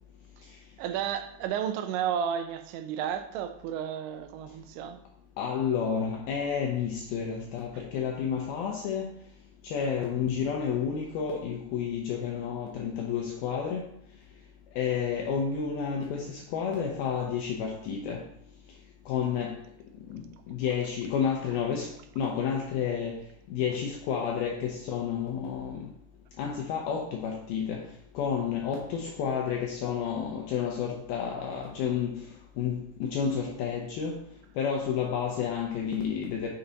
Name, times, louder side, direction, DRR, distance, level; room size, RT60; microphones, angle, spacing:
voice 1, 0.8-5.0, right 9 dB, 85° right, 3.0 m, -32 dB
voice 2, 5.4-9.1 9.6-13.9 14.8-18.2 19.1-19.6 20.1-21.9 22.2-23.2 23.5-25.9 26.4-27.8 28.2-32.2 32.6-34.2 34.6-36.5, left 7 dB, 80° left, 2.2 m, -30 dB
8.1 x 6.7 x 4.0 m
omnidirectional pair, 5.3 m